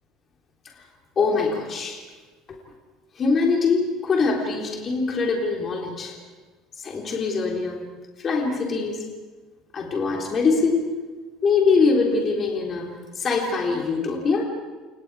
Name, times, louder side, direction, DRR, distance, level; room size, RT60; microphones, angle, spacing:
voice 1, 1.2-2.0 2.5-2.6 3.2-6.2 6.8-7.8 8.2-9.0 9.7-10.8 11.4-14.4, left 4 dB, 30° left, 0 dB, 3.7 m, -23 dB
30.0 x 27.5 x 4.9 m, 1.4 s
cardioid pair, 155°, 0 cm